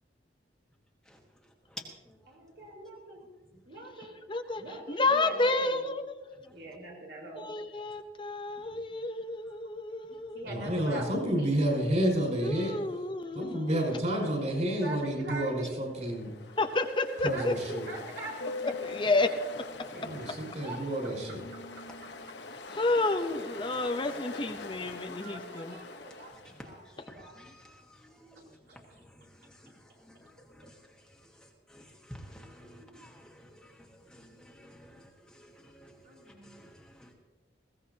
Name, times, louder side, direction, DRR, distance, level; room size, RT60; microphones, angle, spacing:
voice 1, 1.7-2.2 6.4-6.5 10.1-10.2 26.3-28.6 29.0-37.1, equal, 5° left, 0 dB, 1.4 m, -52 dB
voice 2, 2.3-3.2 3.7-4.2 4.6-5.8 6.5-7.5 10.3-11.6 14.8-16.1 17.3-18.4 18.6-18.7 19.9-20.2 20.6-20.8 21.3-21.6 22.0-22.1 25.0-27.4 28.3-28.4 28.7-28.8 32.6-33.1 36.0-36.7, right 2 dB, 70° right, -2 dB, 4.5 m, -43 dB
voice 3, 4.3-4.6 4.9-6.0 7.4-10.8 12.4-14.1 16.6-17.5 18.8-19.3 22.7-25.8, left 2 dB, 30° left, 7 dB, 0.7 m, -30 dB
voice 4, 10.5-12.7 13.3-16.3 17.2-17.9 19.9-21.4, right 1 dB, 45° right, 0 dB, 5.6 m, -30 dB
Ocean, 15.8-26.9, left 3 dB, 80° left, 1.1 m, -43 dB
21.0 x 16.5 x 2.8 m, 1.3 s
head